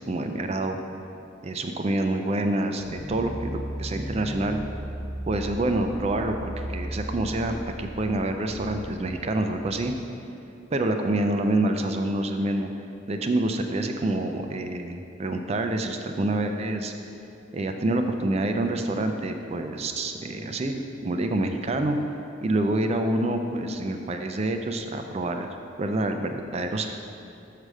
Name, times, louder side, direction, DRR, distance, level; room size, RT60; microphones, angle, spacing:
voice 1, 0.1-0.8 1.4-4.6 5.3-9.9 10.7-12.7 13.1-16.9 17.5-22.0 22.4-26.9, right 2 dB, 30° right, 5 dB, 0.3 m, -27 dB
sound 1, 2.8-10.0, right 1 dB, 25° left, 0.9 m, -36 dB
6.6 x 4.8 x 6.3 m, 2.7 s
head